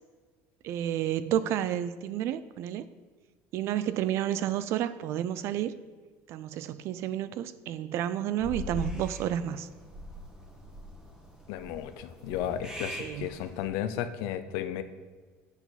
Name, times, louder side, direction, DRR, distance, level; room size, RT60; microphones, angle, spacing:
voice 1, 0.6-2.8 3.5-5.8 6.3-9.7 13.0-13.3, right 11 dB, 50° right, 15 dB, 0.4 m, -31 dB
sound 1, 8.4-13.6, equal, 15° right, 1.3 m, -41 dB
voice 2, 11.5-14.8, left 10 dB, 80° left, 10 dB, 0.6 m, -34 dB
8.1 x 6.9 x 4.1 m, 1.4 s
cardioid pair, 160°, 6 cm